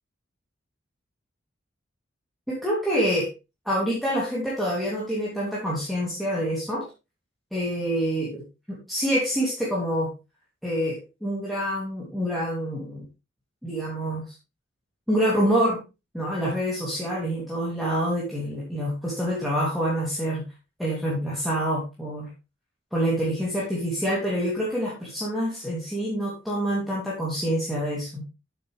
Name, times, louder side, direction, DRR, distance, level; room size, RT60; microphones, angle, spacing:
voice 1, 2.5-3.3 3.6-6.8 7.5-10.1 10.6-13.0 13.6-14.3 15.1-15.8 16.1-20.4 20.8-22.3 22.9-28.2, equal, ahead, -6 dB, 2.9 m, -26 dB
8.8 x 8.3 x 3.3 m, 0.27 s
head